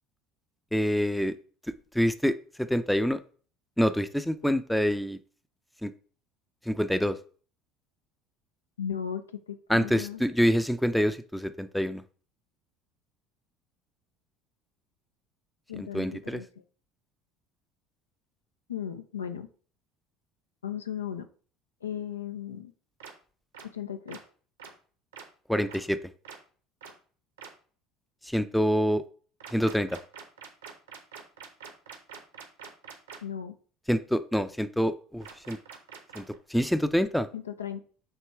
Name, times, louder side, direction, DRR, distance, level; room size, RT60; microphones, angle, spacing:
voice 1, 0.7-1.3 1.7-3.2 3.8-5.2 5.8-5.9 6.7-7.2 9.7-12.0 15.8-16.4 25.5-26.0 28.2-29.0 29.5-30.0 33.9-35.6 36.1-36.2 36.5-37.3, equal, ahead, 12 dB, 0.5 m, -26 dB
voice 2, 8.8-10.2 15.7-16.5 18.7-19.5 20.6-21.3 21.8-22.7 23.6-24.2 33.2-33.6 37.3-37.8, left 9 dB, 80° left, 9 dB, 0.5 m, -36 dB
sound 1, 23.0-23.1 23.5-23.6 24.1-24.2 24.6-24.7 25.1-25.2 25.7-25.8 26.2-26.4 26.8-26.9 27.4-27.5 29.4-33.2 35.2-36.4, right 6 dB, 75° right, 1.0 m, -45 dB
7.6 x 3.0 x 4.6 m, 0.42 s
figure-of-eight pair, 65°, 0 cm